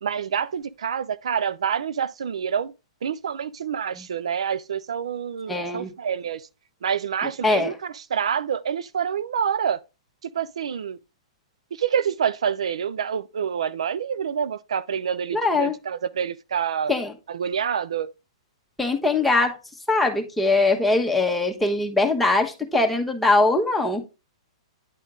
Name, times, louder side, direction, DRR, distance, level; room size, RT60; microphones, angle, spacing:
voice 1, 0.0-2.7 3.0-6.4 6.8-9.8 10.3-11.0 11.7-16.9 17.3-18.1, right 7 dB, 80° right, 0.4 m, -27 dB
voice 2, 5.5-5.9 7.4-7.7 15.3-15.8 16.9-17.1 18.8-19.6 19.9-24.0, left 2 dB, ahead, 1.1 m, -21 dB
9.7 x 3.6 x 3.6 m
hypercardioid pair, 125°, 3 cm